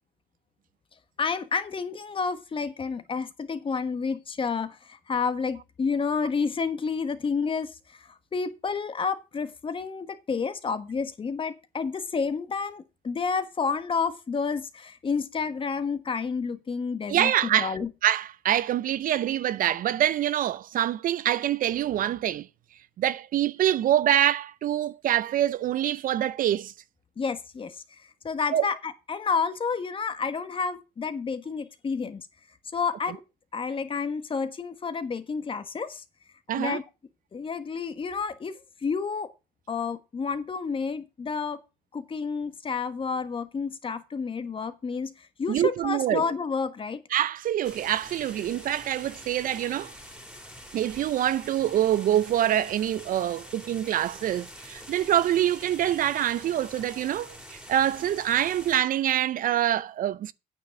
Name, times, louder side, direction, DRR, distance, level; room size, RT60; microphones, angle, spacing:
voice 1, 1.2-17.9 27.2-32.3 32.7-33.2 33.5-36.0 36.5-36.8 37.3-39.3 39.7-41.6 41.9-47.0, left 5 dB, 30° left, 1.5 m, -30 dB
voice 2, 17.1-17.7 18.0-22.5 23.0-26.7 28.5-28.6 36.5-36.8 45.5-46.3 47.1-49.9 50.7-60.3, right 11 dB, 55° right, 0.5 m, -25 dB
sound 1, 47.6-58.8, equal, 5° right, 2.8 m, -45 dB
9.1 x 6.2 x 6.7 m
cardioid pair, 110°, 17 cm